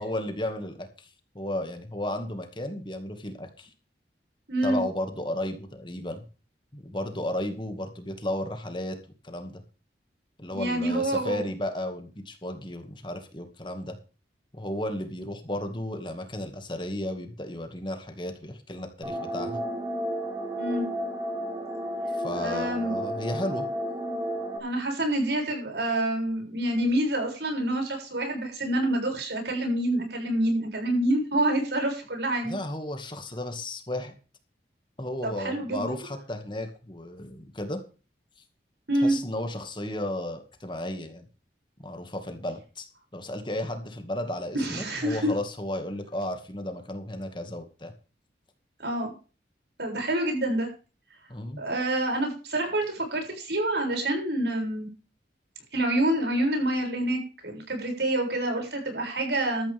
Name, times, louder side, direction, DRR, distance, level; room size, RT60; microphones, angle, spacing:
voice 1, 0.0-3.7 4.6-6.2 6.7-9.0 9.2-9.6 10.4-14.0 14.5-19.6 22.1-23.7 32.4-34.1 35.0-37.8 39.0-41.3 41.8-42.9 43.1-47.9 51.3-51.6, left 1 dB, 25° left, 6 dB, 2.2 m, -34 dB
voice 2, 4.5-4.8 10.5-11.4 20.6-20.9 22.3-23.0 24.6-32.5 35.2-35.9 38.9-39.2 44.5-45.3 48.8-49.1 49.8-50.7 51.6-54.9 55.7-59.7, right 1 dB, 75° right, 2 dB, 7.1 m, -27 dB
sound 1, 19.0-24.6, equal, 20° right, 3.8 m, -32 dB
13.5 x 13.0 x 3.6 m, 0.34 s
head